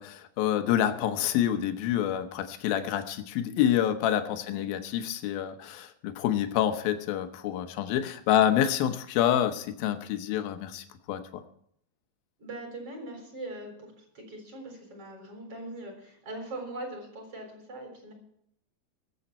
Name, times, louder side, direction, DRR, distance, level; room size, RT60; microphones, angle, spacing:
voice 1, 0.0-11.4, left 10 dB, 80° left, 8 dB, 2.8 m, -27 dB
voice 2, 12.4-18.1, right 1 dB, 40° right, 2 dB, 4.8 m, -41 dB
22.0 x 7.9 x 4.3 m, 0.69 s
omnidirectional pair, 4.2 m